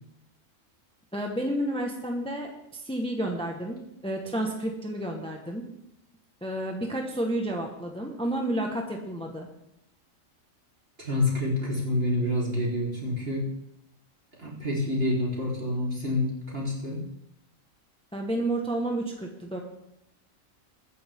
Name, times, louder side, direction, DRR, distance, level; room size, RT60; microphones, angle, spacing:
voice 1, 1.1-5.7 6.4-9.5 18.1-19.6, right 1 dB, 5° left, 1 dB, 1.3 m, -31 dB
voice 2, 11.0-13.5 14.4-17.0, left 1 dB, 45° right, -5 dB, 4.1 m, -28 dB
22.5 x 9.6 x 3.7 m, 0.82 s
omnidirectional pair, 1.4 m